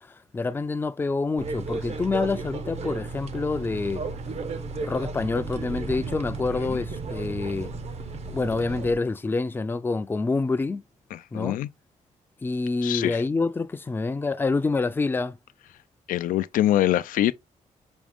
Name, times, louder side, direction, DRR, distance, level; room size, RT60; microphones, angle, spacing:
voice 1, 0.0-4.0 4.8-7.7 8.3-10.8 11.3-11.6 12.4-15.4, left 3 dB, 15° left, 0.4 m, -27 dB
sound 1, 1.4-8.9, right 3 dB, 50° right, 0.8 m, -34 dB
voice 2, 11.1-11.7 12.8-13.2 16.1-17.3, left 13 dB, 90° left, 0.4 m, -24 dB
6.1 x 2.5 x 3.4 m
cardioid pair, 120°, 14 cm